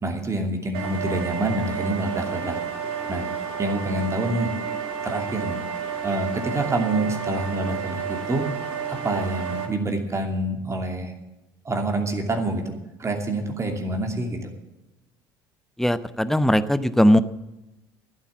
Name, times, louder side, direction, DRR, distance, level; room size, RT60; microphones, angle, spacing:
voice 1, 0.0-2.6 3.1-3.3 3.6-4.5 5.0-5.6 6.0-8.4 8.9-11.1 11.6-14.5, right 2 dB, 25° right, 3 dB, 2.7 m, -27 dB
sound 1, 0.7-9.7, right 7 dB, 65° right, 3.1 m, -31 dB
voice 2, 15.8-17.2, equal, 5° left, 14 dB, 0.8 m, -19 dB
14.5 x 8.8 x 7.3 m, 0.97 s
hypercardioid pair, 65°, 11 cm